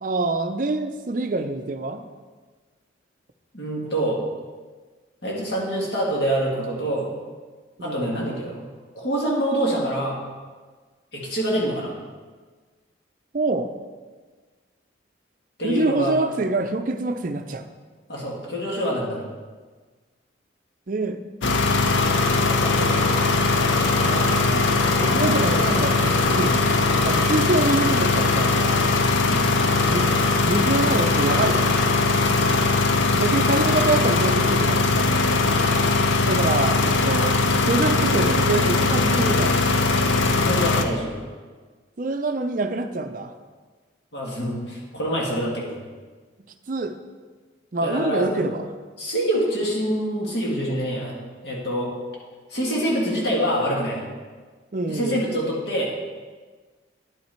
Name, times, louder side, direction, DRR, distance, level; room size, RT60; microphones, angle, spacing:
voice 1, 0.0-2.1 7.8-8.1 13.3-13.7 15.6-17.7 20.9-21.2 23.9-26.7 27.0-28.9 29.8-30.1 30.4-31.9 33.2-35.1 36.2-39.6 42.0-43.3 46.7-47.0 47.7-48.7 54.7-55.2, right 2 dB, 45° right, 8 dB, 0.5 m, -26 dB
voice 2, 3.5-4.2 5.2-7.1 7.8-8.6 9.0-10.2 11.1-11.9 15.6-16.2 18.1-19.2 22.4-23.0 25.2-25.6 29.2-29.4 32.4-32.5 35.4-35.6 40.4-41.2 44.1-45.8 47.8-48.5 49.0-51.1 51.4-51.9 52.5-54.1 54.9-55.9, right 1 dB, 60° left, -3 dB, 1.9 m, -26 dB
sound 1, 21.4-40.8, left 3 dB, 75° left, 0.6 m, -20 dB
10.0 x 5.8 x 4.4 m, 1.4 s
head